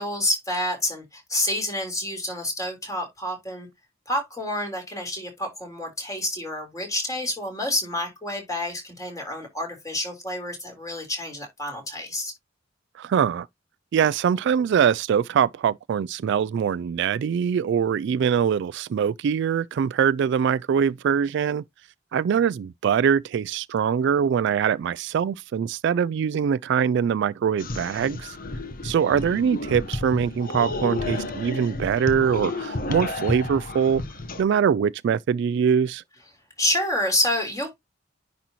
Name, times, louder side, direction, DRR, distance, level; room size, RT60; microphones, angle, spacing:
voice 1, 0.0-3.7 4.1-12.3 36.6-37.7, left 1 dB, 20° left, 3.6 m, -28 dB
voice 2, 13.0-13.5 13.9-21.6 22.1-28.4 28.8-34.0 34.4-36.0, right 7 dB, 65° right, 0.3 m, -23 dB
sound 1, 27.6-34.4, left 2 dB, 50° left, 1.1 m, -31 dB
10.0 x 4.1 x 2.9 m
head